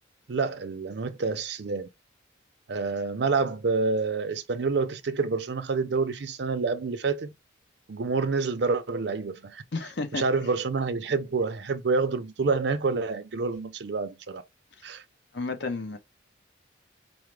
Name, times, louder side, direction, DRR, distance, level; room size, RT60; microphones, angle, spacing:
voice 1, 0.3-1.9 2.7-7.3 7.9-9.6 10.1-14.4 14.8-15.0, right 4 dB, 55° right, 0.5 m, -28 dB
voice 2, 9.7-10.2 14.8-14.9 15.3-16.0, left 3 dB, 60° left, 0.7 m, -32 dB
4.7 x 2.0 x 3.2 m
head